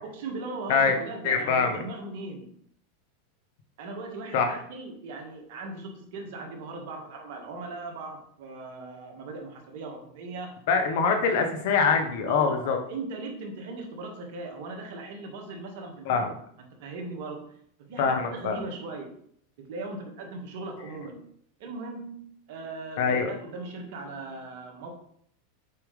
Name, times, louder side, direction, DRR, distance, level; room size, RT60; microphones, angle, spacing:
voice 1, 0.0-2.6 3.8-10.6 11.0-11.3 12.3-16.3 16.8-17.4 17.9-19.1 19.6-21.2 21.6-24.9, right 3 dB, 65° right, 2 dB, 1.8 m, -38 dB
voice 2, 1.2-1.8 4.3-4.6 10.7-12.8 16.0-16.3 18.0-18.6 23.0-23.3, left 5 dB, 65° left, 5 dB, 1.2 m, -24 dB
6.8 x 5.0 x 3.4 m, 0.66 s
hypercardioid pair, 105°, 0 cm